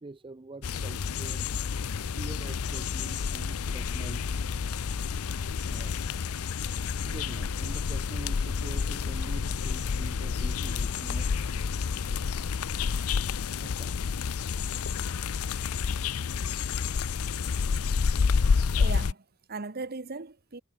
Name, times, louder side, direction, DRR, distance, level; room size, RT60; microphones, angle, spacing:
voice 1, 0.0-1.5 2.2-4.3 5.7-6.0 7.0-11.4 13.6-14.0, right 2 dB, 25° right, 0.5 m, -45 dB
sound 1, 0.6-19.1, left 5 dB, 85° left, 0.6 m, -29 dB
voice 2, 18.8-20.6, right 3 dB, 45° right, 1.1 m, -38 dB
head